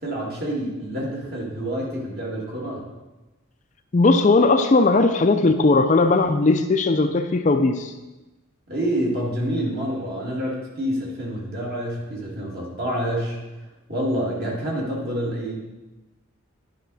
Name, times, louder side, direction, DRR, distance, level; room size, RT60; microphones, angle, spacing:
voice 1, 0.0-2.8 8.7-13.4 13.9-15.6, equal, 45° right, -3 dB, 2.1 m, -27 dB
voice 2, 3.9-7.9, left 3 dB, 35° left, 7 dB, 0.4 m, -18 dB
10.0 x 5.8 x 4.1 m, 1.1 s
head